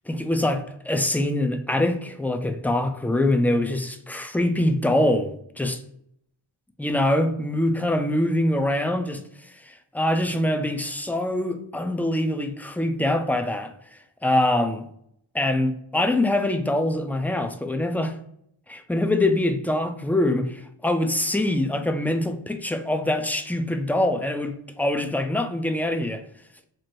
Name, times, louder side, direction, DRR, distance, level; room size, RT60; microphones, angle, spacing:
voice 1, 0.1-5.8 6.8-13.7 14.2-14.9 15.3-18.2 18.7-26.2, left 1 dB, 5° left, 0.3 m, -24 dB
3.0 x 2.5 x 4.4 m
wide cardioid pair, 50°, 50 cm